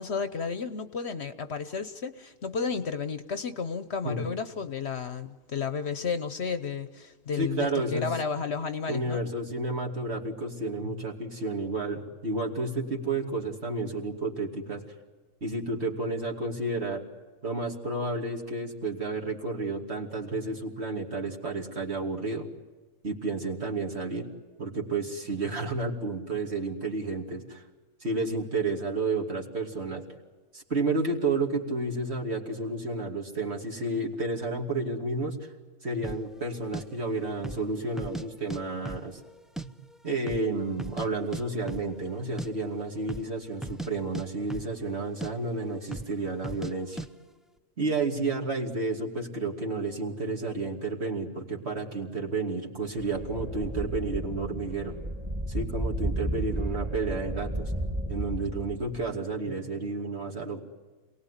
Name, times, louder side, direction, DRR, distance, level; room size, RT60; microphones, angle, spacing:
voice 1, 0.0-9.2, left 5 dB, 55° left, 11 dB, 1.1 m, -32 dB
voice 2, 7.4-8.1 8.9-14.8 15.4-17.0 17.4-22.5 23.0-24.3 24.6-27.6 28.0-30.0 30.5-35.5 35.8-39.2 39.6-39.7 40.0-47.0 47.8-55.0 55.5-57.7 58.1-60.6, right 3 dB, 50° right, 0 dB, 2.9 m, -31 dB
sound 1, 36.0-36.3 36.7-36.8 37.4-37.7 38.0-38.6 38.9-39.7 39.9-40.0 40.3-41.1 41.3-41.4 41.7-41.9 42.2-42.5 43.0-43.3 43.6-43.9 44.1-44.9 45.2-45.3 45.9-46.1 46.4-46.7 47.0-47.1, right 1 dB, ahead, 0.4 m, -37 dB
sound 2, 53.0-59.1, right 1 dB, 20° right, 3.5 m, -33 dB
27.0 x 19.0 x 9.9 m, 1.4 s
omnidirectional pair, 1.4 m